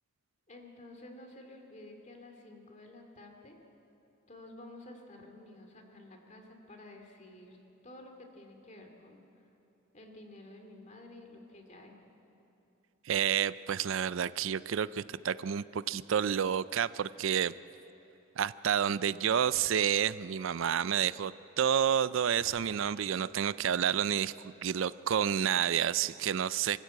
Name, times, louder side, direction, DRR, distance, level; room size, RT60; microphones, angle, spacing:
voice 1, 0.5-3.6 4.3-7.6 7.8-9.5 9.9-12.1, left 1 dB, 35° left, 3 dB, 2.4 m, -51 dB
voice 2, 13.0-17.5 18.4-26.8, right 8 dB, 70° right, 16 dB, 0.4 m, -30 dB
sound 1, 19.4-20.0 22.3-23.3, left 1 dB, 10° left, 1.6 m, -54 dB
25.5 x 13.5 x 8.2 m, 2.9 s
head